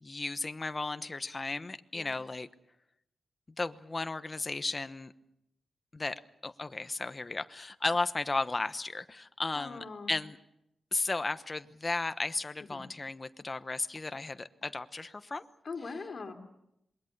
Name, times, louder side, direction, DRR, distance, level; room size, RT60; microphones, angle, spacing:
voice 1, 0.0-2.5 3.6-5.1 5.9-10.4 10.9-15.4, left 3 dB, 25° left, 10 dB, 1.0 m, -35 dB
voice 2, 9.5-10.1 12.7-12.8 15.6-16.3, left 4 dB, 45° left, 4 dB, 3.4 m, -41 dB
27.0 x 22.0 x 6.7 m, 0.82 s
wide cardioid pair, 130°, 0 cm